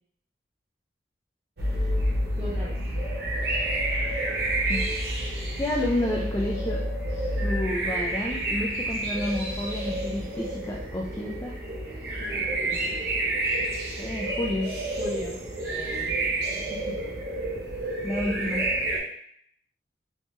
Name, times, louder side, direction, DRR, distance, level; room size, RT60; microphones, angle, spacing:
sound 1, 1.6-19.0, right 1 dB, 55° right, 0.8 m, -29 dB
voice 1, 2.4-2.7 12.3-13.1 15.0-15.4 15.7-16.1 16.7-17.1, left 1 dB, 30° right, -7 dB, 1.2 m, -38 dB
voice 2, 5.6-6.8 7.1-11.6 14.0-14.7 18.0-18.6, left 1 dB, 15° left, -2 dB, 0.3 m, -30 dB
3.5 x 3.0 x 2.7 m, 0.65 s
head